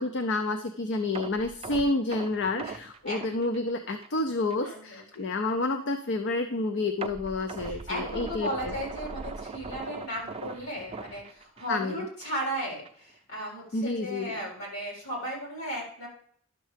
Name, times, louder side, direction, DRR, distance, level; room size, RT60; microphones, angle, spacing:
voice 1, 0.0-8.7 11.7-12.0 13.7-14.4, left 2 dB, 55° left, 8 dB, 0.5 m, -29 dB
sound 1, 1.1-4.2 4.5-4.7 5.1-5.2 7.0-11.9 12.2-12.4 12.8-12.9, right 3 dB, 30° right, 0.5 m, -40 dB
voice 2, 4.6-5.0 7.6-16.1, equal, 75° left, -3 dB, 4.2 m, -35 dB
11.5 x 6.4 x 3.3 m, 0.62 s
head